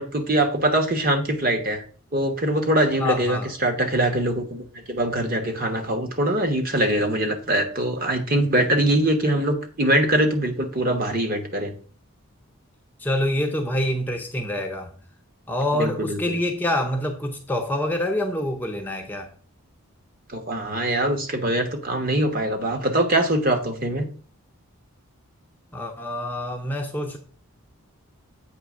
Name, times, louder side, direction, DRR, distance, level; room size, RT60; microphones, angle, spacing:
voice 1, 0.0-1.8 2.1-11.7 15.7-16.3 20.3-24.1, right 1 dB, 40° right, 1.2 m, -23 dB
voice 2, 3.0-3.5 13.0-14.9 15.5-19.3 25.7-27.2, left 1 dB, 10° left, 0.6 m, -26 dB
8.0 x 3.4 x 6.2 m
head